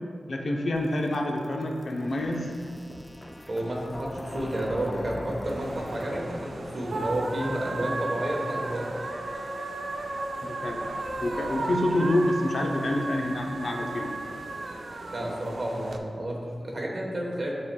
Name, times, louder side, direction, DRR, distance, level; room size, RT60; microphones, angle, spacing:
voice 1, 0.3-2.5 10.4-10.9 11.2-14.1, left 1 dB, 55° left, 1 dB, 0.7 m, -27 dB
sound 1, 0.7-7.5, left 1 dB, 10° left, 0.4 m, -43 dB
voice 2, 3.5-8.8 15.1-17.5, right 1 dB, 45° right, -2 dB, 1.2 m, -31 dB
sound 2, 3.6-12.5, left 1 dB, 40° left, 1.0 m, -44 dB
sound 3, 5.4-16.0, right 2 dB, 60° right, 0.5 m, -35 dB
11.0 x 4.4 x 2.3 m, 2.1 s
wide cardioid pair, 130°, 0 cm